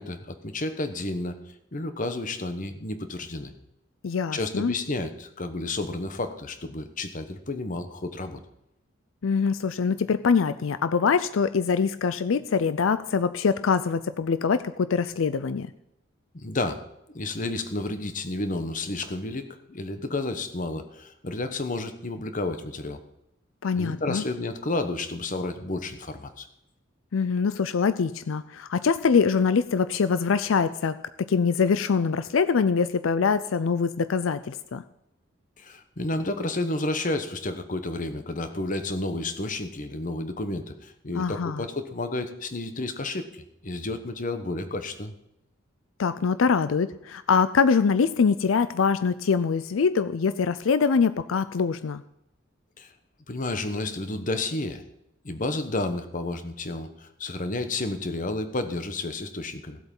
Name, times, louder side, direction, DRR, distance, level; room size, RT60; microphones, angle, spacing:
voice 1, 0.0-1.4 1.7-3.5 4.3-8.4 16.3-16.8 17.1-23.0 23.7-26.5 35.6-45.1 52.8-52.9 53.3-54.8 55.2-59.8, left 2 dB, 40° left, 9 dB, 1.1 m, -31 dB
voice 2, 4.0-4.7 9.2-15.7 23.6-24.2 27.1-34.8 41.1-41.6 46.0-52.0, left 5 dB, 85° left, 13 dB, 0.5 m, -24 dB
16.5 x 7.9 x 5.4 m, 0.82 s
head